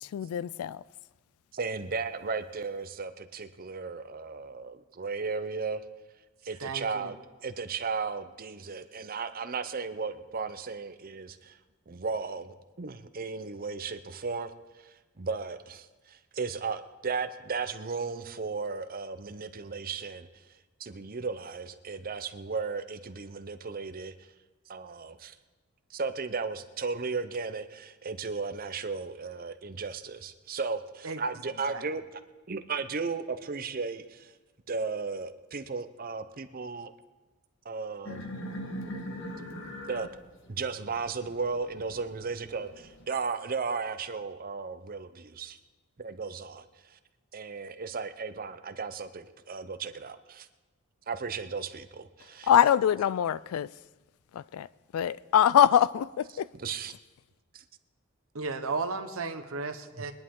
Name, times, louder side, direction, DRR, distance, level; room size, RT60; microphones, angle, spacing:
voice 1, 0.0-0.8 52.5-53.7 54.3-54.7 54.9-56.5, left 9 dB, 80° left, 0.3 m, -24 dB
voice 2, 1.5-5.8 6.4-7.2 7.4-11.6 11.9-14.5 14.8-20.3 20.8-24.1 24.7-25.4 25.9-32.2 32.5-34.3 34.7-36.9 37.6-38.2 39.9-40.1 40.5-45.6 46.0-46.6 47.3-50.5 51.1-52.5 56.6-56.9 57.5-57.6, right 4 dB, 40° right, 0.7 m, -35 dB
voice 3, 6.6-7.1 31.0-31.2 31.7-31.8 58.3-60.1, right 4 dB, 70° right, 1.0 m, -34 dB
sound 1, 38.0-43.0, equal, 60° left, 1.4 m, -41 dB
22.0 x 10.5 x 3.8 m
head